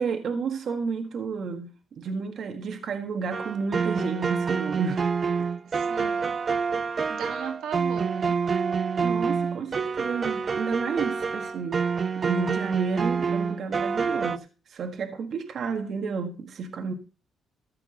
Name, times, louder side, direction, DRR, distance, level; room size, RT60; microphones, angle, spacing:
voice 1, 0.0-5.1 5.4-5.5 9.0-11.8 12.2-16.9, right 5 dB, 60° right, 1.5 m, -31 dB
sound 1, 3.3-14.4, right 5 dB, 40° right, 0.6 m, -27 dB
voice 2, 5.7-6.4 7.1-8.4, right 8 dB, 80° right, 1.7 m, -37 dB
14.0 x 4.8 x 7.8 m
cardioid pair, 90°, 0 cm